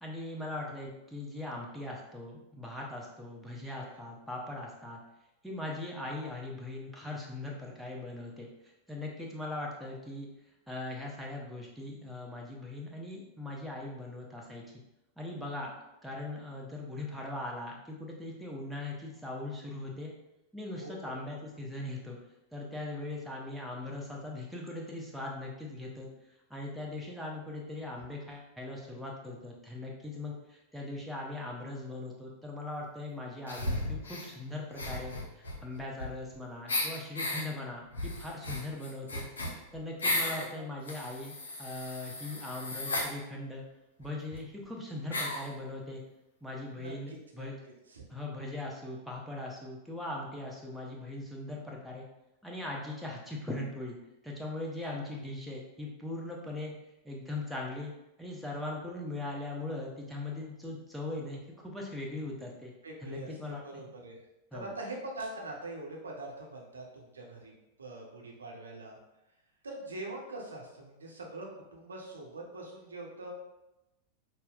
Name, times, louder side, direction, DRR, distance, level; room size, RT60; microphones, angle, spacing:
voice 1, 0.0-5.0 5.4-10.3 10.7-14.8 15.2-20.1 20.5-22.2 22.5-26.1 26.5-39.3 39.5-43.6 44.0-46.0 46.4-47.6 48.1-52.1 52.4-54.0 54.2-56.7 57.0-57.9 58.2-62.7 63.0-63.8 64.5-64.7, left 2 dB, ahead, -3 dB, 0.7 m, -40 dB
voice 2, 20.8-21.1 40.3-40.6 46.7-48.0 54.7-55.0 62.8-64.2 64.5-69.0 69.6-73.3, right 2 dB, 70° right, -1 dB, 0.7 m, -44 dB
sound 1, 33.5-34.3 34.7-36.3 36.7-37.4 37.9-40.5 40.8-43.1 44.0-44.1 44.3-44.4 45.1-45.5, left 1 dB, 70° left, 0.6 m, -35 dB
5.5 x 2.0 x 2.3 m, 0.93 s
figure-of-eight pair, 90°, 0 cm